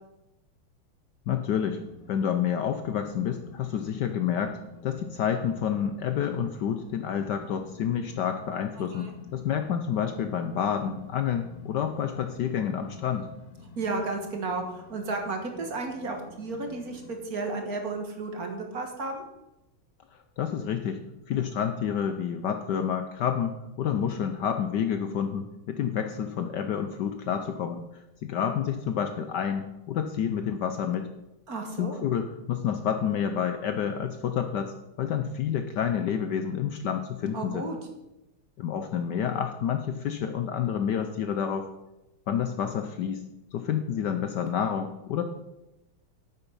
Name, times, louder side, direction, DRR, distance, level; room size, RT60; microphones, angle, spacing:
voice 1, 1.3-1.8 2.1-13.3 20.4-21.0 21.3-27.8 28.2-31.1 31.8-37.7 38.6-41.7 42.3-43.2 43.5-45.2, left 8 dB, 70° left, 8 dB, 1.1 m, -29 dB
sound 1, 1.5-17.2, left 5 dB, 50° left, 1.4 m, -49 dB
voice 2, 8.8-9.1 13.8-19.2 31.5-32.1 37.3-37.8, right 3 dB, 50° right, 3 dB, 1.7 m, -33 dB
9.3 x 8.1 x 5.4 m, 0.97 s
omnidirectional pair, 2.3 m